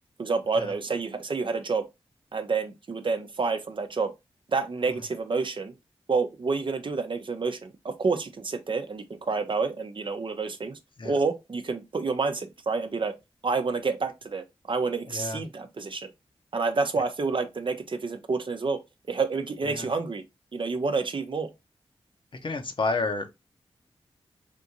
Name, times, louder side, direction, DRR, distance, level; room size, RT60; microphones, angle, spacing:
voice 1, 0.2-1.9 2.3-4.1 4.5-5.7 6.1-10.8 11.0-13.2 13.4-16.1 16.5-18.8 19.1-20.2 20.5-21.5, right 4 dB, 50° right, 0.6 m, -28 dB
voice 2, 15.1-15.4 19.6-19.9 22.4-23.4, left 3 dB, 50° left, 0.8 m, -30 dB
3.4 x 2.6 x 2.8 m
cardioid pair, 45°, 11 cm